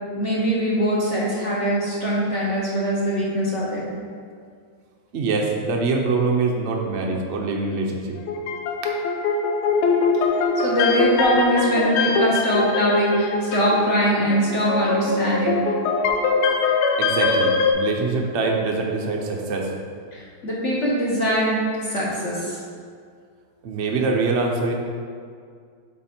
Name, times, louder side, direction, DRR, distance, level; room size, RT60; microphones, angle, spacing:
voice 1, 0.2-3.8 10.5-15.6 20.1-22.6, equal, 45° left, -6 dB, 1.1 m, -22 dB
voice 2, 5.1-8.2 17.0-19.7 23.6-24.7, right 3 dB, 70° right, 0 dB, 0.6 m, -24 dB
sound 1, 8.2-17.7, left 4 dB, 80° left, 1.5 m, -22 dB
7.5 x 4.4 x 4.4 m, 2.1 s
omnidirectional pair, 2.4 m